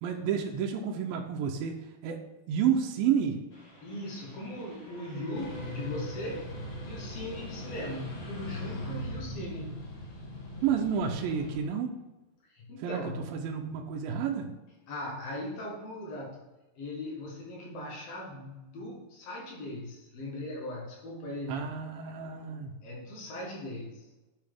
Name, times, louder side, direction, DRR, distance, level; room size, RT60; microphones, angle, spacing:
voice 1, 0.0-3.4 10.6-11.9 12.8-14.5 21.5-22.8, right 7 dB, 80° right, 2 dB, 2.3 m, -30 dB
Train, 3.5-8.8, left 2 dB, 50° left, 1.3 m, -50 dB
voice 2, 3.8-6.5 6.8-9.9 12.5-13.3 14.9-16.4 16.8-21.6 22.8-24.1, left 1 dB, 85° left, -1 dB, 1.4 m, -39 dB
sound 1, 5.3-11.6, equal, 65° left, 3.2 m, -40 dB
10.5 x 5.5 x 3.5 m, 1.0 s
omnidirectional pair, 4.5 m